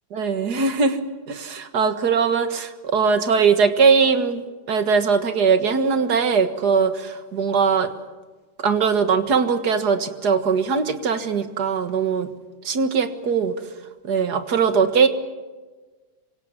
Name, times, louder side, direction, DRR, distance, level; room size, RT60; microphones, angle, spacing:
voice 1, 0.1-1.0 1.3-7.9 8.6-12.3 12.6-13.5 14.0-15.1, right 5 dB, 60° right, 9 dB, 2.1 m, -20 dB
27.0 x 25.0 x 7.4 m, 1.3 s
omnidirectional pair, 2.0 m